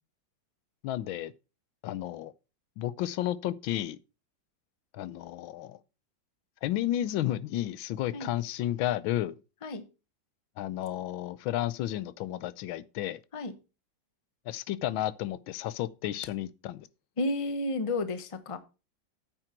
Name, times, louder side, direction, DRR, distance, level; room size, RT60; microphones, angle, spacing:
voice 1, 0.8-1.3 1.8-2.3 2.8-4.0 4.9-5.8 6.6-9.4 10.6-13.2 14.5-16.9, left 13 dB, 90° left, 1.5 m, -32 dB
voice 2, 17.2-18.6, left 2 dB, 25° left, 0.8 m, -31 dB
9.1 x 7.7 x 4.4 m
omnidirectional pair, 2.1 m